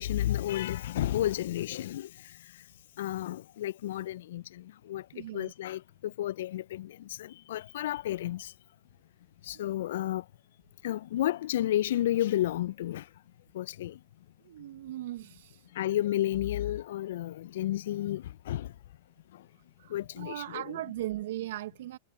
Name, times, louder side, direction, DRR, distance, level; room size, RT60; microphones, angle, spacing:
voice 1, 0.0-2.1 3.0-4.4 4.9-5.0 5.3-6.9 7.2-8.5 9.5-10.2 10.8-13.0 13.5-13.9 15.8-18.7 19.9-20.7, left 13 dB, 70° left, 0.4 m, -31 dB
voice 2, 5.1-5.5 9.5-9.6 14.5-15.6 19.8-22.0, right 14 dB, 70° right, 1.1 m, -38 dB
hypercardioid pair, 110°, 0 cm